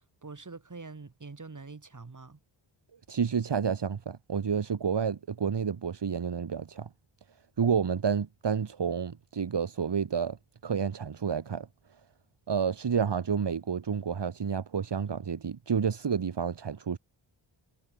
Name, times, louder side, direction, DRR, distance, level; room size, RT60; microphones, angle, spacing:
voice 1, 0.0-2.4, right 4 dB, 40° right, 5.4 m, -45 dB
voice 2, 3.1-6.9 7.6-10.4 10.6-11.7 12.5-17.0, right 6 dB, 60° right, 2.3 m, -30 dB
cardioid pair, 70°, 48 cm